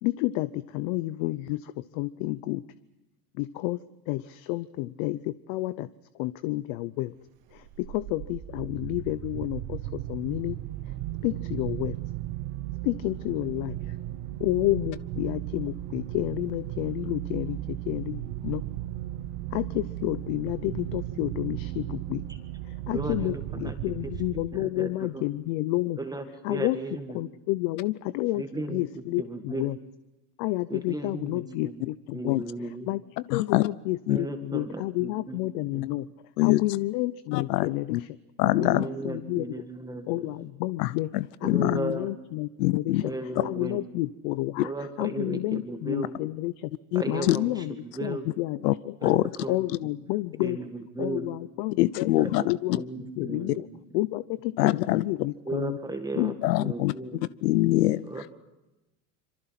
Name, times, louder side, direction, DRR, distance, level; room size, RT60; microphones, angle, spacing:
voice 1, 0.0-2.6 3.4-3.8 4.1-5.9 6.2-7.1 7.5-10.6 11.2-12.0 12.8-13.8 14.4-18.6 19.5-22.2 22.9-26.0 26.4-26.8 27.1-28.4 28.7-29.8 30.4-32.4 32.9-33.0 33.3-36.1 36.4-38.2 38.5-39.5 40.1-41.1 41.4-43.1 43.4-44.7 45.0-46.7 47.1-47.7 48.0-49.1 49.5-50.6 51.0-52.1 52.4-52.8 53.2-53.7 53.9-55.8 56.2-56.4, left 18 dB, 60° left, 15 dB, 0.8 m, -30 dB
sound 1, 7.5-24.9, right 15 dB, 55° right, 1.3 m, -36 dB
voice 2, 22.9-25.2 26.0-27.2 28.3-29.7 30.7-31.8 32.1-32.9 34.1-35.4 35.7-35.9 38.4-40.4 41.4-42.1 43.0-43.8 44.6-46.1 46.9-48.3 49.0-49.9 50.4-51.3 52.2-53.8 55.5-57.2 58.0-58.3, right 2 dB, 10° right, 6 dB, 1.9 m, -36 dB
voice 3, 33.3-33.7 34.1-34.2 36.4-36.6 37.3-38.0 38.4-38.8 40.8-41.8 42.6-43.0 43.4-43.5 44.6-44.7 46.9-47.4 48.6-48.7 49.0-49.2 51.8-52.4 54.6-55.0 56.4-56.9 57.4-58.1, left 18 dB, 90° left, 18 dB, 0.8 m, -24 dB
26.0 x 24.0 x 5.9 m, 0.99 s
supercardioid pair, 135°, 47 cm